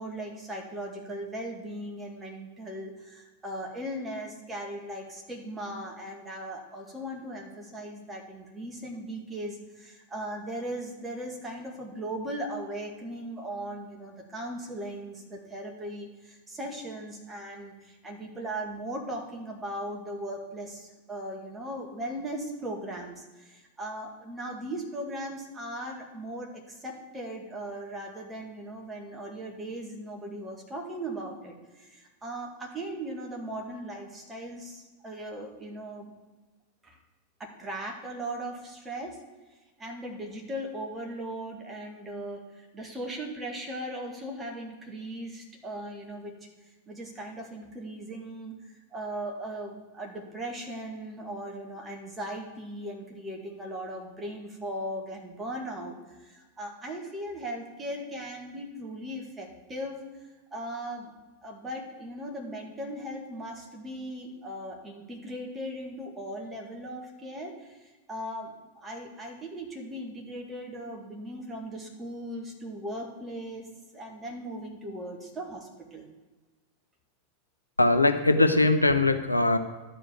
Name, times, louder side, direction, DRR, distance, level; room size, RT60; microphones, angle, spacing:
voice 1, 0.0-36.1 36.8-37.0 37.4-39.2 39.8-46.3 46.9-48.6 48.9-60.0 60.5-61.1 61.4-73.7 73.9-76.1, right 1 dB, 15° right, 0 dB, 2.1 m, -38 dB
voice 2, 77.8-79.6, left 2 dB, 85° left, 8 dB, 0.6 m, -21 dB
11.5 x 5.1 x 7.1 m, 1.2 s
figure-of-eight pair, 90°, 0 cm